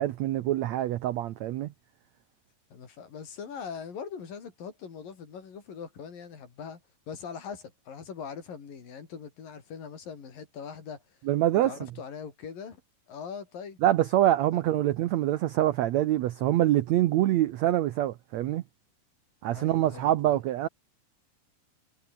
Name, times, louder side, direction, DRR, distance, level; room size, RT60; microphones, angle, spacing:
voice 1, 0.0-1.7 11.2-11.9 13.8-18.6 19.4-20.7, right 13 dB, 85° right, 1.5 m, -25 dB
voice 2, 2.7-6.8 7.1-11.0 11.5-12.8 13.1-13.8 14.5-14.6 19.5-20.4, left 6 dB, 65° left, 5.7 m, -41 dB
omnidirectional pair, 4.3 m